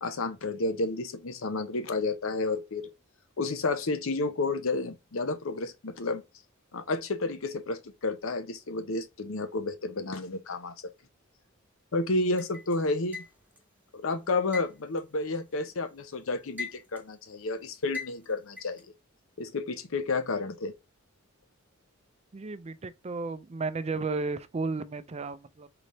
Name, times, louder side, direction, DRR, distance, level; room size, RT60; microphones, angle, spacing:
voice 1, 0.0-2.9 3.4-6.2 6.7-10.7 11.9-13.2 13.9-18.8 19.4-20.7, left 3 dB, 70° left, 0.7 m, -31 dB
sound 1, 12.4-13.7 14.5-15.9 16.3-17.2 17.9-18.8, left 4 dB, 10° right, 1.2 m, -40 dB
voice 2, 22.3-25.7, right 3 dB, 30° right, 0.4 m, -33 dB
3.8 x 3.4 x 4.1 m
head